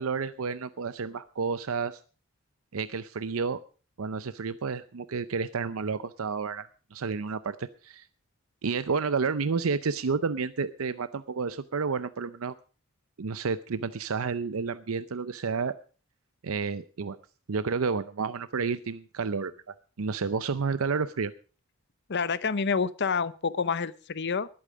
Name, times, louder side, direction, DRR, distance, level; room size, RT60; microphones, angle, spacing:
voice 1, 0.0-2.0 2.7-3.6 4.0-8.1 8.6-12.5 13.2-15.7 16.4-17.2 17.5-21.3, right 5 dB, 80° right, 13 dB, 0.6 m, -30 dB
voice 2, 22.1-24.5, left 5 dB, 55° left, 16 dB, 0.8 m, -28 dB
19.5 x 8.7 x 5.0 m, 0.37 s
head